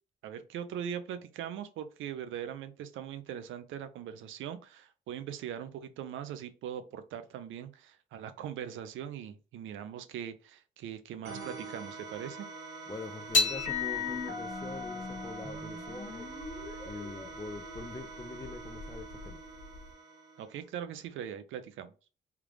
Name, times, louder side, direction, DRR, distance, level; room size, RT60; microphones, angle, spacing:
voice 1, 0.2-12.5 20.4-21.9, right 9 dB, 80° right, 0.5 m, -41 dB
sound 1, 11.2-20.7, right 4 dB, 65° right, 1.2 m, -45 dB
voice 2, 12.9-16.4 16.8-19.4, left 3 dB, 15° left, 0.5 m, -44 dB
sound 2, 13.3-19.9, left 3 dB, 40° left, 1.3 m, -35 dB
3.4 x 2.4 x 3.1 m
cardioid pair, 90°, 20 cm